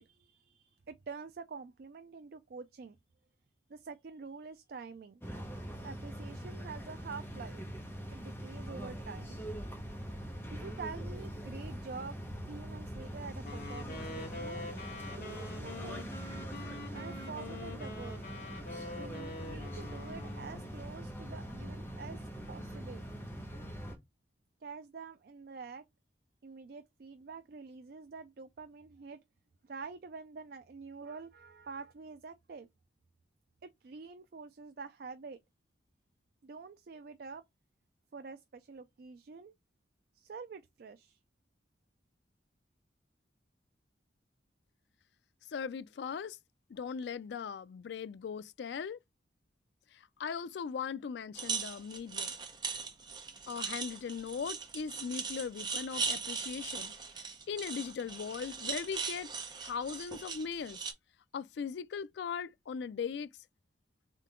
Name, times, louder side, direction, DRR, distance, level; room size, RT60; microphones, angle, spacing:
voice 1, 0.0-3.0 3.7-5.2 5.8-7.6 8.1-9.4 10.5-12.2 12.4-14.6 15.2-16.1 16.9-18.2 19.0-23.0 24.6-25.8 26.4-29.2 29.6-32.7 33.6-35.4 36.4-37.4 38.1-39.5 40.1-41.2, right 4 dB, 55° right, 0.4 m, -47 dB
sound 1, 5.2-23.9, equal, 10° left, 1.3 m, -43 dB
Wind instrument woodwind instrument, 13.4-20.9, left 2 dB, 50° left, 1.5 m, -45 dB
voice 2, 45.5-46.4 46.7-49.0 49.9-52.3 53.5-56.9 57.5-59.3 59.6-60.8 61.3-63.3, left 6 dB, 70° left, 0.3 m, -39 dB
sound 2, 51.3-60.9, right 5 dB, 25° right, 0.8 m, -39 dB
3.7 x 3.7 x 3.6 m
head